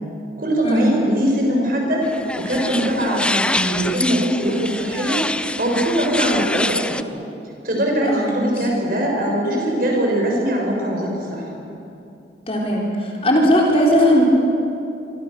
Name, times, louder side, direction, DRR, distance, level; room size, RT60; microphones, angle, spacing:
voice 1, 0.4-2.1 2.4-5.2 5.6-7.0 7.6-11.5, right 1 dB, 50° right, -1 dB, 6.7 m, -21 dB
sound 1, 2.0-7.0, left 1 dB, 5° left, 0.5 m, -25 dB
voice 2, 8.0-8.5 12.5-14.2, equal, 35° left, -2 dB, 4.1 m, -18 dB
26.0 x 25.0 x 7.0 m, 2.7 s
head